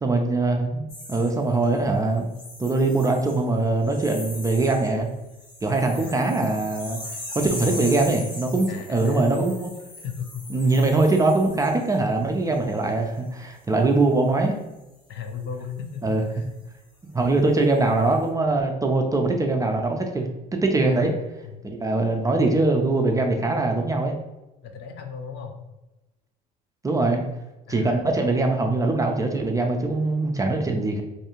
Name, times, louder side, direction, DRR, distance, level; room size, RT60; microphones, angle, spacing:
voice 1, 0.0-2.3 2.6-5.1 5.6-7.0 7.4-9.7 10.5-14.6 16.0-16.2 17.0-21.1 21.6-24.1 26.8-27.2 27.7-31.0, right 2 dB, 15° right, 3 dB, 0.4 m, -22 dB
sound 1, 0.9-1.8 2.3-3.5 3.8-4.9 5.2-12.0 12.5-12.8, left 2 dB, 85° left, 1.0 m, -39 dB
voice 2, 5.7-6.3 7.4-8.1 8.7-9.2 10.0-10.8 15.1-16.5 20.8-21.1 21.4-21.6 24.6-25.6 27.7-28.1, left 7 dB, 55° left, 4 dB, 0.6 m, -37 dB
2.7 x 2.3 x 2.9 m, 1.0 s
supercardioid pair, 85°, 20 cm